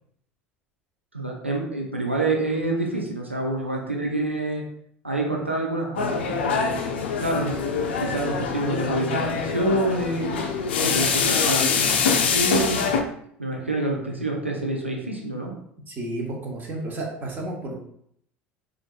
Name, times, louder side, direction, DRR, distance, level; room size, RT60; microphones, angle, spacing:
voice 1, 1.1-4.6 5.0-6.7 7.2-7.6 8.0-10.3 10.8-12.8 13.4-15.5, right 2 dB, 90° right, 0 dB, 0.5 m, -27 dB
sound 1, 6.0-13.0, left 5 dB, 70° left, 0.4 m, -24 dB
voice 2, 15.9-17.8, right 2 dB, 30° right, 0 dB, 1.0 m, -32 dB
4.4 x 2.5 x 2.5 m, 0.69 s
figure-of-eight pair, 70°, 6 cm